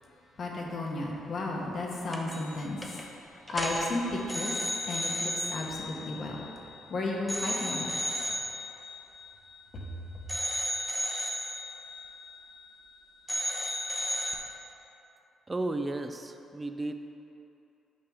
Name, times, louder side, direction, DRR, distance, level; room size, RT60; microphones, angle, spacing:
voice 1, 0.4-4.6 4.8-6.4 6.9-7.9 9.7-9.9, left 2 dB, 50° left, -1 dB, 1.2 m, -34 dB
sound 1, 2.1-2.6 2.8-3.0 3.5-6.8 7.3-9.9 10.3-13.0 13.3-14.4, left 1 dB, 10° left, 0.8 m, -34 dB
voice 2, 15.5-16.9, right 2 dB, 20° right, 7 dB, 0.4 m, -33 dB
8.8 x 4.9 x 3.7 m, 2.8 s
cardioid pair, 90°, 0 cm